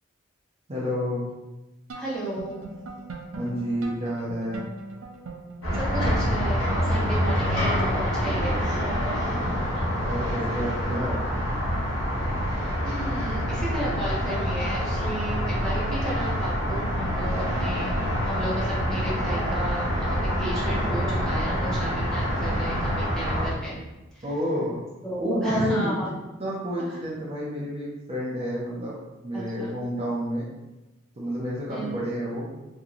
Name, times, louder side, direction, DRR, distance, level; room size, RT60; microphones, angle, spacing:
voice 1, 0.7-1.2 3.3-4.6 9.2-9.7 10.0-11.2 24.2-24.8 25.2-25.9 26.4-29.0 29.2-30.5 31.2-32.5, equal, 30° right, -6 dB, 0.6 m, -29 dB
voice 2, 1.9-2.7 5.7-9.5 12.8-18.0 18.2-23.7 24.1-24.2 25.0-26.1 26.8-27.0 29.3-29.8 31.7-31.9, right 1 dB, 5° left, -8 dB, 1.1 m, -33 dB
sound 1, 1.9-9.5, right 2 dB, 90° right, 0.5 m, -40 dB
sound 2, 5.6-23.5, equal, 90° left, 1.1 m, -26 dB
2.9 x 2.7 x 3.8 m, 1.1 s
head